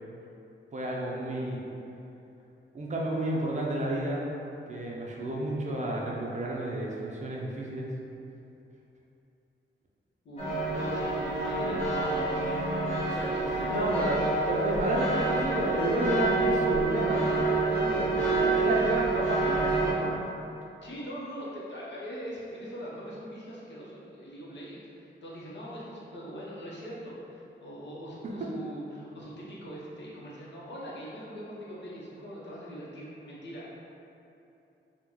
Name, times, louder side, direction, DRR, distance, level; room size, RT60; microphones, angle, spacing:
voice 1, 0.7-1.6 2.7-4.3 4.7-7.9 13.4-14.2 14.5-20.2 28.2-28.3, right 1 dB, 35° right, -3 dB, 0.5 m, -31 dB
voice 2, 10.2-12.5 13.2-14.2 20.8-33.7, equal, 65° left, -6 dB, 0.8 m, -42 dB
sound 1, 10.4-19.9, right 2 dB, 30° left, 1.2 m, -28 dB
3.7 x 2.1 x 3.0 m, 2.8 s
wide cardioid pair, 115°, 20 cm